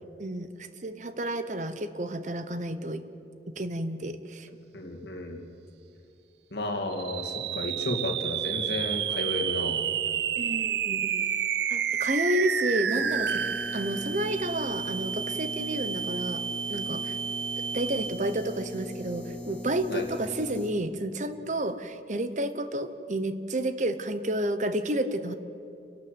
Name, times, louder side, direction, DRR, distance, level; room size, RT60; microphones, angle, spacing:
voice 1, 0.2-3.0 3.6-4.5 10.4-11.3 11.7-16.4 16.7-17.2 17.7-25.3, right 1 dB, 45° right, 11 dB, 1.0 m, -31 dB
voice 2, 4.7-5.4 6.5-9.8 19.9-20.0, left 1 dB, 70° left, 2 dB, 2.5 m, -32 dB
sound 1, 6.9-18.5, right 8 dB, 70° right, 0.7 m, -30 dB
sound 2, 12.9-20.7, left 1 dB, 10° left, 2.8 m, -40 dB
29.5 x 12.0 x 8.1 m, 2.8 s
head